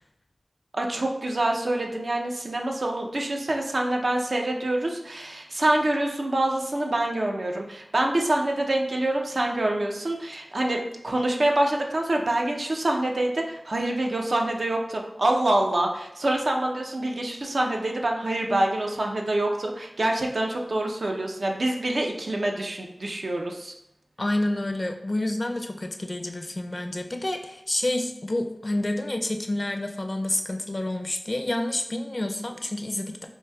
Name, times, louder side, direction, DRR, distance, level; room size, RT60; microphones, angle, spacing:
voice 1, 0.7-10.8 11.0-23.7, right 1 dB, 70° right, 1 dB, 0.5 m, -26 dB
voice 2, 24.2-33.3, left 1 dB, 40° left, 4 dB, 0.4 m, -29 dB
4.7 x 2.6 x 2.2 m, 0.83 s
wide cardioid pair, 55°, 0 cm